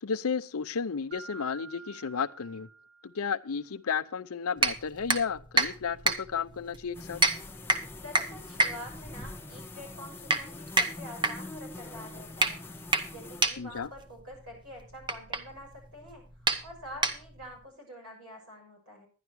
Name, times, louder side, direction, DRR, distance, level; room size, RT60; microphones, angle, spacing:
voice 1, 0.0-2.7 3.0-7.2 13.6-13.9, left 6 dB, 80° left, 0.6 m, -33 dB
Mallet percussion, 1.1-3.7, right 4 dB, 55° right, 4.7 m, -49 dB
sound 1, 4.6-17.6, right 2 dB, 20° right, 0.7 m, -30 dB
sound 2, 6.9-13.4, left 2 dB, 10° left, 0.9 m, -44 dB
voice 2, 8.0-12.6 13.1-19.1, equal, 90° right, 6.4 m, -46 dB
11.0 x 11.0 x 4.6 m
head